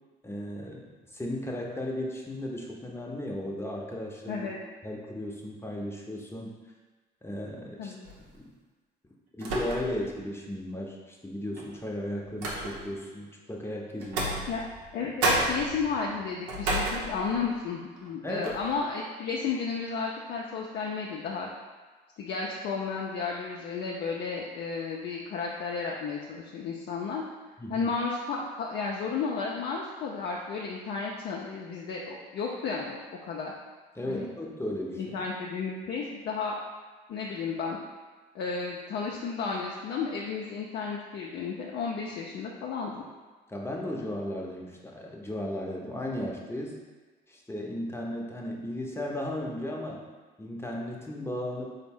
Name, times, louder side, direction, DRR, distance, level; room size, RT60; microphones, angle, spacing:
voice 1, 0.2-0.8 1.1-4.5 4.8-6.6 7.2-7.9 8.3-8.4 9.4-14.5 18.2-18.5 27.6-27.9 34.0-35.2 43.5-46.8 47.3-50.1 50.4-51.7, left 1 dB, 10° left, -1 dB, 0.7 m, -35 dB
voice 2, 4.3-4.6 7.8-8.1 14.5-14.6 14.9-21.5 22.2-27.2 27.7-33.5 34.0-34.3 35.0-36.5 37.1-37.8 38.3-43.1, left 5 dB, 55° left, -2 dB, 0.5 m, -33 dB
sound 1, 8.0-8.4 9.4-10.1 10.5-10.6 11.5-13.0 14.0-14.9 15.2-17.5 18.0-18.1 18.4-18.8, right 2 dB, 75° right, 0.7 m, -31 dB
3.9 x 2.1 x 3.5 m, 1.3 s
hypercardioid pair, 55°, 21 cm